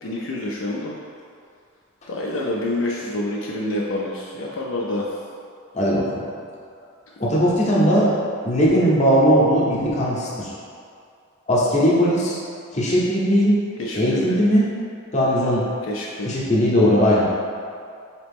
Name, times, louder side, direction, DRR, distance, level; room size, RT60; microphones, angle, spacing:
voice 1, 0.0-1.0 2.1-5.1 13.8-14.4 15.9-16.5, left 1 dB, 70° left, -3 dB, 0.4 m, -27 dB
voice 2, 5.7-6.2 7.2-8.1 8.4-10.5 11.5-12.4 12.7-13.6 13.9-14.7 15.1-15.7 16.2-17.2, equal, 35° left, -6 dB, 0.7 m, -18 dB
4.1 x 2.9 x 3.4 m, 2.3 s
head